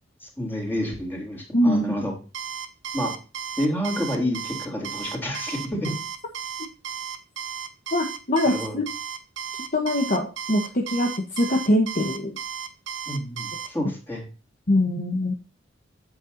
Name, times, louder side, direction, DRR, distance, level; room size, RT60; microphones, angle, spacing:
voice 1, 0.2-2.1 2.9-3.1 3.6-5.9 8.4-8.8 13.1-14.2, equal, 10° left, -1 dB, 3.2 m, -29 dB
voice 2, 1.5-2.0 7.9-8.8 9.7-12.3 14.7-15.3, left 1 dB, 45° left, 0 dB, 1.2 m, -23 dB
Alarm, 2.3-13.7, right 8 dB, 75° right, 0.9 m, -34 dB
8.7 x 7.9 x 2.6 m, 0.34 s
head